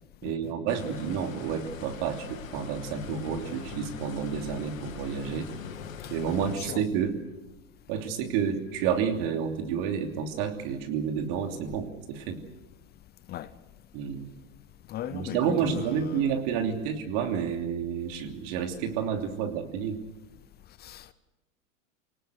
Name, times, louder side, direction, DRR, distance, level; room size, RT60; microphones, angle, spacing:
voice 1, 0.2-5.5 6.1-7.2 7.9-12.4 13.9-14.2 15.1-20.0, right 7 dB, 50° right, 3.0 m, -30 dB
sound 1, 0.7-6.6, left 7 dB, 85° left, 2.6 m, -41 dB
voice 2, 6.5-6.8 13.3-13.5 14.9-16.4 20.8-21.1, left 12 dB, 25° left, 0.7 m, -38 dB
23.0 x 19.0 x 8.0 m
hypercardioid pair, 125°, 39 cm